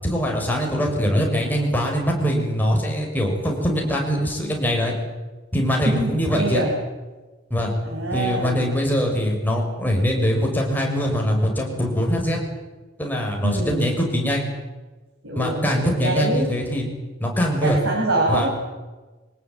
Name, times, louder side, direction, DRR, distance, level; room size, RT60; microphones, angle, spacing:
voice 1, 0.0-4.9 5.5-6.6 7.5-7.7 8.1-12.4 13.0-14.4 15.3-16.9 17.2-17.8 18.3-18.5, equal, 10° left, 0 dB, 6.4 m, -22 dB
voice 2, 5.8-6.7 7.8-8.6 13.4-13.9 15.2-16.5 17.6-18.5, right 1 dB, 90° right, -1 dB, 5.7 m, -25 dB
24.5 x 19.0 x 9.1 m, 1.2 s
head